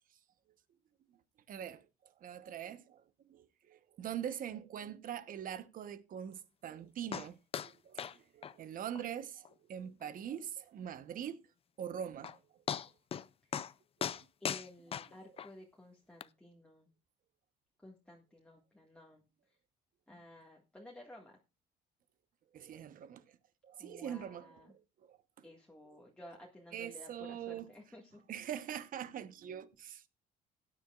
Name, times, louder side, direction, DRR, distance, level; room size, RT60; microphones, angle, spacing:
voice 1, 1.5-1.9 2.2-3.0 3.3-7.4 7.6-11.4 11.8-12.4 14.0-14.2 22.5-23.2 23.6-25.2 25.9-26.0 26.7-27.7 28.3-30.0, right 9 dB, 55° right, 1.1 m, -43 dB
sound 1, 7.1-7.3 7.5-7.7 8.0-8.2 8.4-8.5 9.0-9.1 9.5-9.6 10.0-10.1 11.8-11.9 12.2-12.4 12.7-13.3 13.5-13.7 14.0-15.5 16.2-16.3, left 8 dB, 35° left, 0.5 m, -38 dB
voice 2, 14.4-16.9 17.8-19.2 20.1-21.3 23.8-24.7 25.4-28.3, left 1 dB, 5° left, 1.9 m, -54 dB
16.5 x 9.9 x 2.5 m
cardioid pair, 110°, 17 cm